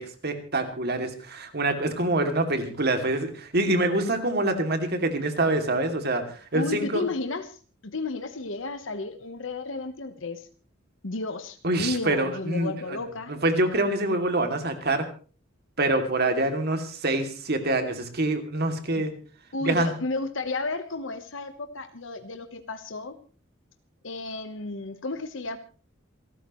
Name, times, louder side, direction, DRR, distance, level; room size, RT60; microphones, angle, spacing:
voice 1, 0.0-7.0 11.6-13.0 13.3-15.1 15.8-19.1 19.6-19.9, right 2 dB, 55° right, 6 dB, 2.7 m, -26 dB
voice 2, 6.5-10.5 11.0-13.3 19.0-19.1 19.5-23.1 24.0-25.6, left 3 dB, 65° left, 8 dB, 1.2 m, -33 dB
28.0 x 13.0 x 3.1 m, 0.38 s
head